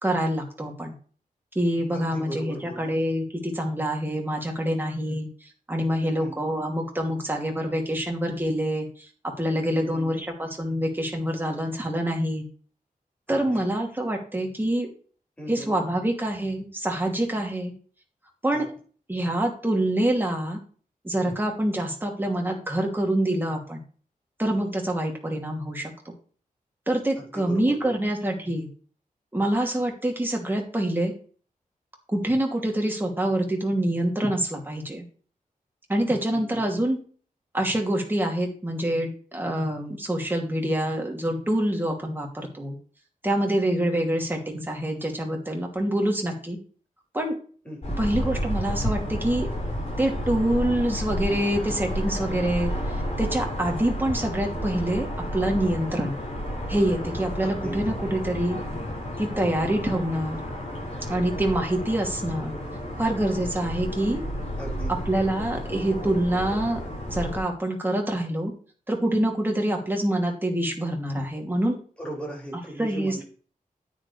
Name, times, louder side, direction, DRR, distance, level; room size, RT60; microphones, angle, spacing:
voice 1, 0.0-0.9 1.5-5.3 5.7-9.1 9.4-12.5 13.3-14.9 15.5-17.7 18.4-18.7 19.1-20.6 21.0-23.8 24.4-26.1 26.9-28.7 29.3-31.1 32.1-35.0 35.9-37.0 37.5-42.8 43.2-46.6 47.1-47.3 48.0-49.5 50.0-55.1 55.3-56.1 56.7-58.6 59.2-60.4 61.1-62.5 63.0-64.2 65.1-66.8 67.1-68.5 68.9-71.8 72.8-73.2, right 1 dB, 15° right, 1 dB, 2.8 m, -26 dB
voice 2, 1.9-2.9 5.1-5.2 6.0-6.3 9.7-10.1 13.3-13.7 15.4-15.7 18.5-18.6 27.2-28.0 36.3-36.8 47.6-48.0 57.4-57.9 64.6-64.9 72.0-73.2, equal, 10° left, -4 dB, 5.8 m, -38 dB
sound 1, 47.8-67.4, equal, 45° left, 6.0 m, -31 dB
9.6 x 9.5 x 3.4 m, 0.41 s
wide cardioid pair, 130°, 15 cm